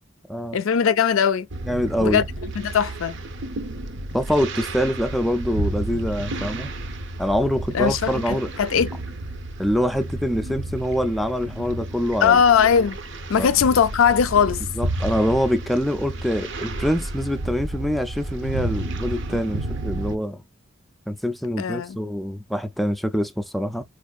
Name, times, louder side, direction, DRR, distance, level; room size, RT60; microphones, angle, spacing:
voice 1, 0.5-1.5 2.0-2.2 2.6-3.2 7.7-8.9 12.2-13.0 13.3-14.6 21.6-22.0, left 7 dB, 75° left, 0.4 m, -19 dB
sound 1, 1.5-20.2, right 1 dB, 60° right, 0.6 m, -31 dB
voice 2, 1.7-2.2 4.1-6.7 7.2-8.5 9.6-12.4 13.4-13.5 14.8-20.4 21.1-23.8, equal, ahead, 0.3 m, -25 dB
4.5 x 2.5 x 2.3 m
head